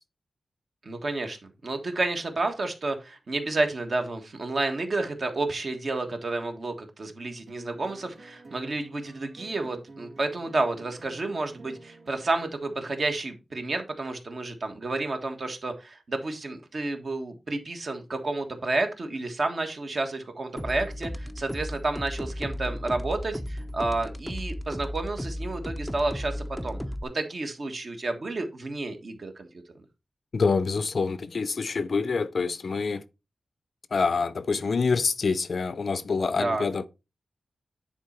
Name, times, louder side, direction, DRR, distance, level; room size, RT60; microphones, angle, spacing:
voice 1, 0.8-29.5 36.4-36.6, right 2 dB, 45° right, 1.4 m, -30 dB
sound 1, 7.5-12.5, right 3 dB, 60° right, 1.6 m, -50 dB
sound 2, 20.6-27.0, equal, ahead, 0.6 m, -35 dB
voice 2, 30.3-33.0 33.9-36.9, left 4 dB, 50° left, 0.5 m, -26 dB
9.8 x 4.2 x 4.3 m
wide cardioid pair, 155°, 0 cm